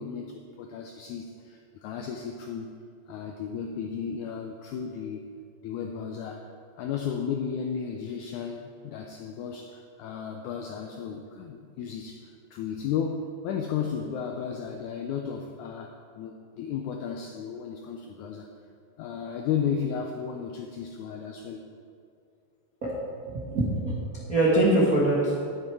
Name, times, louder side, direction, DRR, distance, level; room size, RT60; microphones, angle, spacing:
voice 1, 0.0-2.7 3.1-5.3 5.6-18.5 19.0-21.6, left 7 dB, 85° left, 3 dB, 1.7 m, -34 dB
voice 2, 23.2-25.4, right 1 dB, 65° right, -5 dB, 0.8 m, -24 dB
10.5 x 9.0 x 4.8 m, 2.4 s
omnidirectional pair, 4.2 m